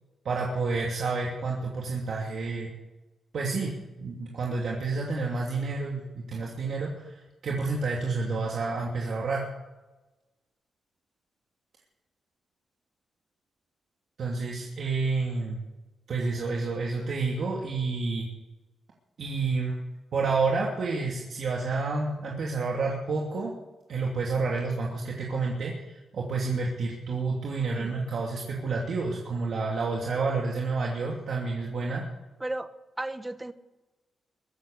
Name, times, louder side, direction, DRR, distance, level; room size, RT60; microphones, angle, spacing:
voice 1, 0.2-2.7 3.3-9.4 14.2-15.6 16.1-18.3 19.2-19.8 20.1-23.5 23.9-32.0, right 3 dB, 65° right, -3 dB, 2.8 m, -29 dB
voice 2, 32.4-32.7 33.0-33.5, right 2 dB, 15° right, 11 dB, 1.0 m, -34 dB
22.5 x 8.2 x 6.7 m, 1.1 s
cardioid pair, 110°, 0 cm